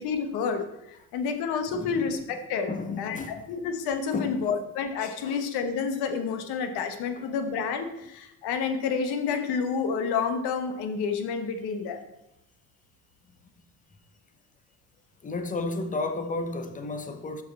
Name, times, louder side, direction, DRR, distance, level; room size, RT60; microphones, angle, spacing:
voice 1, 0.0-2.7 3.0-12.0, left 5 dB, 80° left, 1.1 m, -29 dB
voice 2, 1.6-2.4 2.7-3.5 4.1-4.5 5.2-5.4 7.2-7.3 15.2-17.4, left 3 dB, 20° left, 0.7 m, -33 dB
6.6 x 6.4 x 4.1 m
cardioid pair, 105°, 38 cm